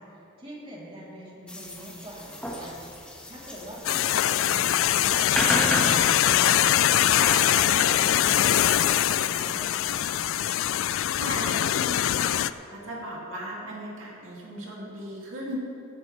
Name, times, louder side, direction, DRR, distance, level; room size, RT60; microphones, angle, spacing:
voice 1, 0.0-2.8 3.3-6.7 7.2-10.1, right 1 dB, 25° right, -6 dB, 3.3 m, -43 dB
sound 1, 1.5-10.2, left 1 dB, 5° left, 1.4 m, -34 dB
sound 2, 3.8-12.5, left 11 dB, 70° left, 0.3 m, -23 dB
voice 2, 11.1-12.3 12.7-15.6, equal, 75° right, -4 dB, 2.6 m, -37 dB
17.5 x 11.0 x 3.3 m, 2.8 s
head